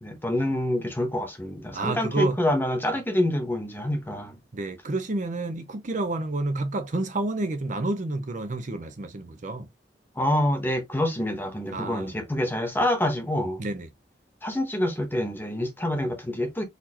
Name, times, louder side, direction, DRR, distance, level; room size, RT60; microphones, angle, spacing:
voice 1, 0.0-4.4 10.1-13.6 14.4-16.6, left 1 dB, 10° left, 1.0 m, -26 dB
voice 2, 1.7-2.4 4.5-9.7 11.7-12.2 13.6-13.9, right 2 dB, 45° right, 0.6 m, -29 dB
4.2 x 2.8 x 2.8 m
head